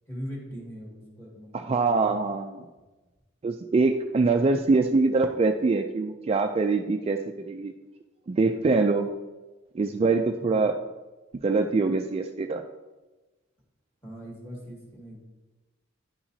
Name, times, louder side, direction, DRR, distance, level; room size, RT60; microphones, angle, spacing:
voice 1, 0.1-2.2 8.2-8.4 10.4-10.7 14.0-15.2, equal, 15° left, -3 dB, 2.1 m, -41 dB
voice 2, 1.5-2.7 3.4-7.2 7.5-7.7 8.3-9.1 9.7-10.8 11.4-12.6, right 3 dB, 30° right, 5 dB, 0.3 m, -24 dB
10.5 x 5.8 x 2.8 m, 1.2 s
head